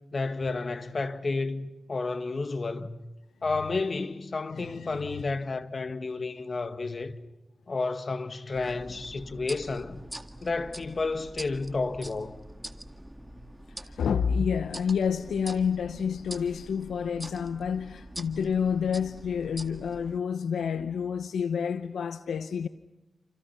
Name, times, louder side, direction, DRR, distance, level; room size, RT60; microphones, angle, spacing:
voice 1, 0.1-3.0 3.4-7.1 7.7-10.0 10.4-12.4, left 3 dB, 50° left, 1.9 m, -31 dB
voice 2, 4.5-5.2 13.8-22.7, left 7 dB, 90° left, 0.8 m, -29 dB
sound 1, 8.5-20.2, right 1 dB, 10° right, 1.9 m, -44 dB
29.5 x 27.5 x 5.9 m
cardioid pair, 55°, 0 cm